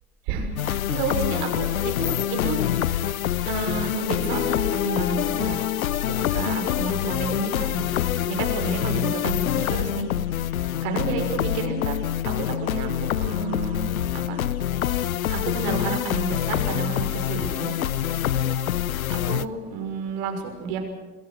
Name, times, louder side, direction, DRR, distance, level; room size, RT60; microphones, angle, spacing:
voice 1, 0.3-2.7 3.4-5.6 6.1-7.9 8.3-20.8, right 5 dB, 50° right, 5 dB, 6.2 m, -31 dB
sound 1, 0.6-19.5, left 11 dB, 70° left, 0.9 m, -26 dB
sound 2, 4.2-9.0, left 9 dB, 15° left, 1.1 m, -35 dB
27.5 x 22.0 x 6.4 m, 1.3 s
figure-of-eight pair, 85°, 43 cm